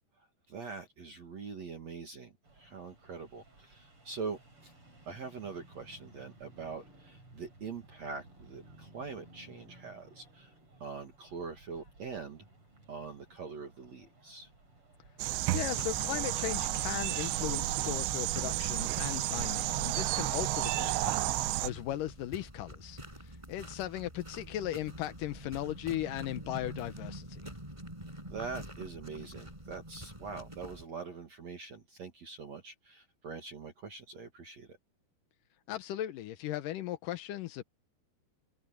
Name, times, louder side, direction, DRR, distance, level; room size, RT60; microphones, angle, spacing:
voice 1, 0.5-4.7 5.1-10.5 10.8-12.5 12.9-14.5 28.3-34.8, right 5 dB, 45° right, 2.8 m, -43 dB
sound 1, 2.4-17.8, right 2 dB, 30° right, 7.4 m, -58 dB
sound 2, 15.2-21.7, right 17 dB, 85° right, 3.1 m, -32 dB
voice 2, 15.5-27.4 35.7-37.6, left 13 dB, 75° left, 2.0 m, -37 dB
sound 3, 15.6-30.8, right 1 dB, 5° right, 6.2 m, -46 dB
omnidirectional pair, 5.0 m